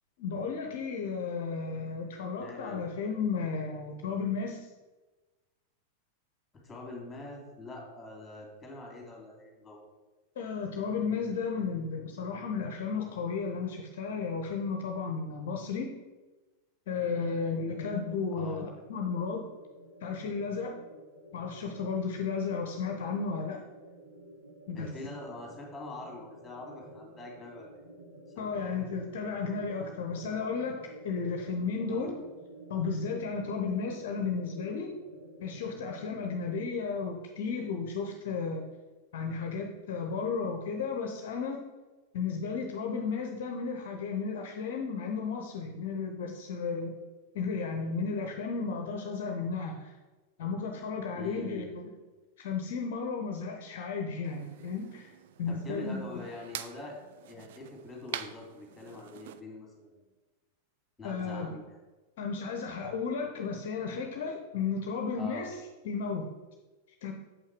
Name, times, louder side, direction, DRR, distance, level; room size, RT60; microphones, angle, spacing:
voice 1, 0.2-4.7 10.4-15.9 16.9-19.4 20.0-20.8 21.3-23.6 24.7-24.9 28.4-32.2 32.7-34.9 35.4-38.6 39.1-41.6 42.1-46.9 47.3-49.9 50.4-51.8 52.4-55.1 55.4-56.2 61.0-61.5 62.2-65.6 65.8-66.3 67.0-67.1, left 5 dB, 55° left, 3 dB, 0.8 m, -33 dB
voice 2, 2.4-2.8 6.5-9.8 18.3-18.6 24.7-27.7 28.3-28.9 31.9-32.1 51.1-51.7 55.5-57.0 57.3-60.1 61.0-61.8 65.2-65.4, left 2 dB, 15° left, 0 dB, 2.7 m, -44 dB
sound 1, 16.9-36.6, right 1 dB, 85° right, 2.0 m, -51 dB
sound 2, 54.2-59.4, right 11 dB, 55° right, 0.4 m, -45 dB
7.4 x 5.7 x 4.7 m, 1.2 s
figure-of-eight pair, 90°, 0 cm